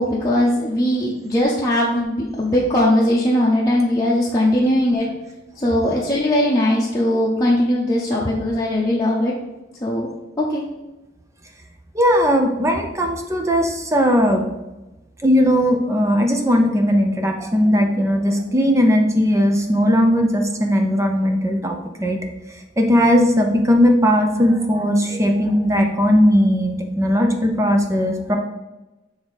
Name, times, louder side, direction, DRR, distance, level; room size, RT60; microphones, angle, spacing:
voice 1, 0.0-5.1 5.6-9.3 9.8-10.1 10.4-10.6, left 1 dB, 20° left, -6 dB, 0.8 m, -19 dB
voice 2, 11.9-14.4 15.2-22.2 22.8-28.4, equal, 15° right, 3 dB, 0.5 m, -18 dB
6.8 x 3.5 x 4.0 m, 1.0 s
head